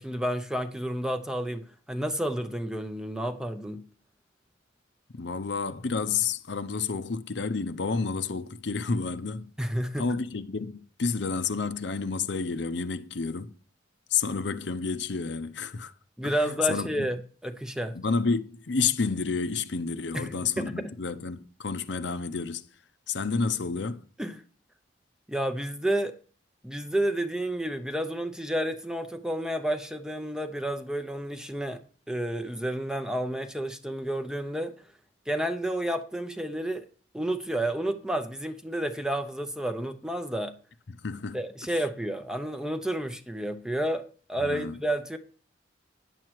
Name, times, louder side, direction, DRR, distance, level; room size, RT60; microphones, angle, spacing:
voice 1, 0.0-3.8 9.6-10.0 16.2-18.0 20.1-20.9 24.2-24.4 25.3-26.1 26.6-31.8 32.1-34.7 35.3-36.9 37.1-40.5 41.3-45.2, right 1 dB, 5° right, 0.6 m, -30 dB
voice 2, 5.1-9.5 10.0-13.5 14.1-15.9 16.2-17.1 17.9-22.6 23.1-24.0 40.9-41.4 41.7-41.8 44.4-44.8, left 5 dB, 65° left, 0.7 m, -30 dB
9.9 x 7.5 x 4.6 m
head